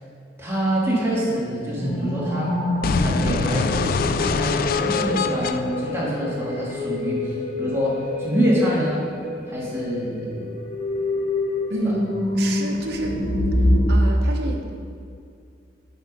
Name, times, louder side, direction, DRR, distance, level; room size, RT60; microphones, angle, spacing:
voice 1, 0.4-2.5 3.0-7.2 7.6-9.0 9.5-10.4 11.8-11.9, right 1 dB, 15° right, -7 dB, 2.2 m, -25 dB
sound 1, 1.8-13.9, left 1 dB, 35° left, 1.0 m, -27 dB
sound 2, 2.8-6.8, left 4 dB, 55° left, 0.3 m, -24 dB
voice 2, 11.7-12.1 12.3-13.2 13.9-14.8, right 2 dB, 60° right, 1 dB, 1.1 m, -28 dB
8.0 x 5.9 x 5.4 m, 2.3 s
head